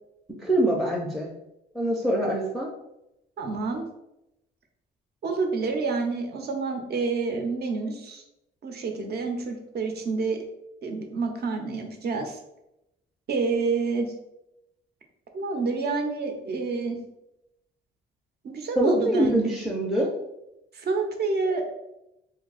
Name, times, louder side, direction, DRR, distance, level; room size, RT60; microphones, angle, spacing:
voice 1, 0.4-1.3 1.7-2.7 18.8-20.1, right 1 dB, ahead, -3 dB, 0.5 m, -24 dB
voice 2, 3.4-3.9 5.2-8.2 8.6-10.4 10.8-12.4 13.3-14.1 15.3-17.0 18.4-19.5 20.7-21.7, right 4 dB, 55° right, 4 dB, 0.7 m, -28 dB
2.6 x 2.3 x 3.9 m, 0.87 s
cardioid pair, 90°, 20 cm